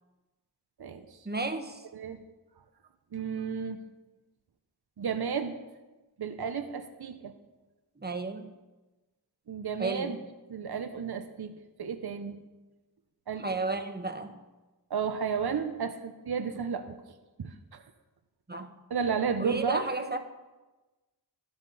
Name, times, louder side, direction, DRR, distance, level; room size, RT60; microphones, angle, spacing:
voice 1, 1.2-1.8 8.0-8.5 9.8-10.2 13.4-14.3 18.5-18.8 19.4-20.2, right 3 dB, 25° right, 7 dB, 1.4 m, -33 dB
voice 2, 3.1-3.8 5.0-5.6 6.2-7.3 9.5-10.2 10.5-12.4 13.3-13.4 14.9-17.0 17.4-17.8 18.9-19.8, right 6 dB, 65° right, 7 dB, 0.9 m, -32 dB
13.5 x 13.0 x 4.2 m, 1.2 s
cardioid pair, 40°, 41 cm